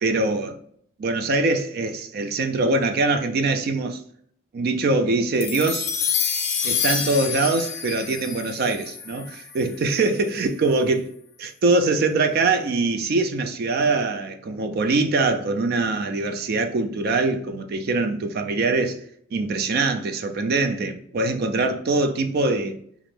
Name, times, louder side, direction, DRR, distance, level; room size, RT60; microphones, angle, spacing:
voice 1, 0.0-0.6 1.0-4.0 4.5-5.9 6.6-11.0 11.4-19.0 19.3-22.8, right 3 dB, 45° right, 0.3 m, -23 dB
sound 1, 5.4-9.9, left 7 dB, 50° left, 0.5 m, -28 dB
2.5 x 2.1 x 3.1 m
head